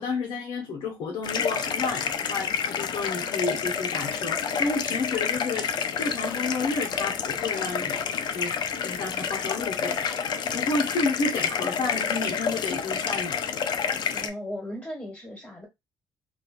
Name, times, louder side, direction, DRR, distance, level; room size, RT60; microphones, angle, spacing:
voice 1, 0.0-8.0 8.3-13.4, left 3 dB, 80° left, 0.9 m, -31 dB
sound 1, 1.2-14.3, left 7 dB, 60° left, 0.4 m, -29 dB
voice 2, 14.1-15.7, left 1 dB, 15° left, 1.8 m, -37 dB
3.1 x 2.3 x 2.5 m
cardioid pair, 95°, 8 cm